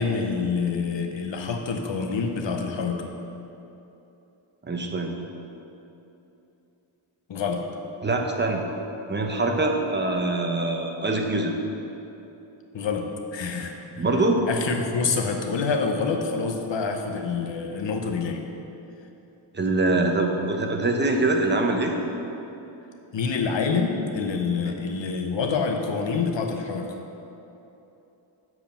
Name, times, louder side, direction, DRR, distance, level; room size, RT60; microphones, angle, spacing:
voice 1, 0.0-3.1 7.3-7.7 12.7-14.1 14.5-18.4 23.1-27.0, left 5 dB, 65° left, 4 dB, 0.9 m, -27 dB
voice 2, 4.6-5.1 8.0-8.6 9.1-11.6 14.0-14.5 19.5-22.0 24.6-24.7, right 2 dB, 20° right, 2 dB, 0.7 m, -24 dB
7.7 x 4.8 x 6.9 m, 2.9 s
wide cardioid pair, 150°, 48 cm